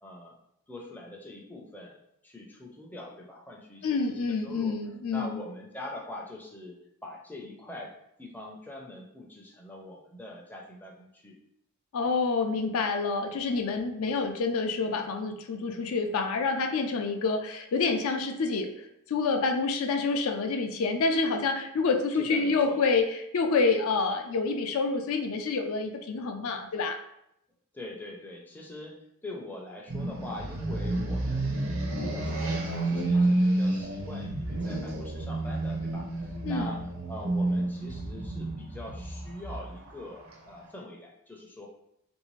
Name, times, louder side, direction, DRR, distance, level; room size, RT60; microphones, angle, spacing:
voice 1, 0.0-0.3 0.7-2.0 2.2-4.8 5.1-6.8 7.0-7.9 8.2-11.3 22.2-22.8 27.7-31.7 32.0-36.8 37.1-41.7, left 1 dB, 10° left, -2 dB, 0.4 m, -43 dB
voice 2, 3.8-5.4 11.9-27.0 36.4-36.7, left 4 dB, 70° left, 5 dB, 0.4 m, -28 dB
sound 1, 29.9-40.6, right 2 dB, 65° right, 0.6 m, -30 dB
3.1 x 2.6 x 3.1 m, 0.77 s
head